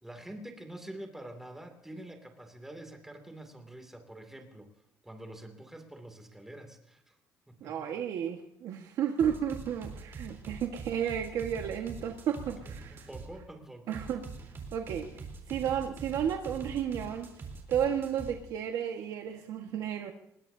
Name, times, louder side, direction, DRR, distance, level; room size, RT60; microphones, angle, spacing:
voice 1, 0.0-4.7 5.0-7.2 7.5-8.0 12.9-14.0, right 1 dB, 5° right, 5 dB, 2.6 m, -46 dB
voice 2, 7.6-13.1 13.9-14.3 14.7-17.3 17.7-20.1, right 9 dB, 65° right, 3 dB, 1.5 m, -32 dB
sound 1, 9.2-13.3 13.9-18.3, right 4 dB, 35° right, 3.7 m, -43 dB
24.5 x 21.0 x 2.8 m, 0.75 s
cardioid pair, 170°, 6 cm